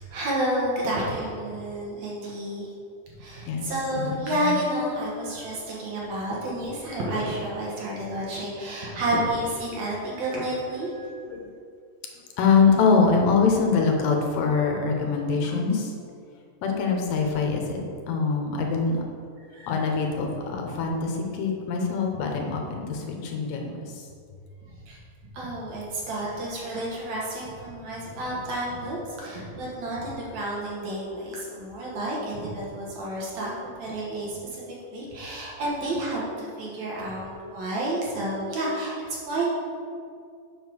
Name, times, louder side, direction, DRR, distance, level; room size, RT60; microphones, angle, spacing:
voice 1, 0.0-2.7 3.2-11.2 19.5-19.7 24.9-25.0 25.3-33.5 33.8-34.6 34.9-38.9 39.3-39.6, right 1 dB, 60° right, -5 dB, 2.8 m, -30 dB
voice 2, 3.5-4.6 5.5-5.6 11.3-11.5 12.4-15.9 16.6-17.8 18.1-19.0 19.7-24.0, left 5 dB, 90° left, 2 dB, 2.8 m, -24 dB
7.4 x 5.4 x 6.3 m, 2.4 s
omnidirectional pair, 3.8 m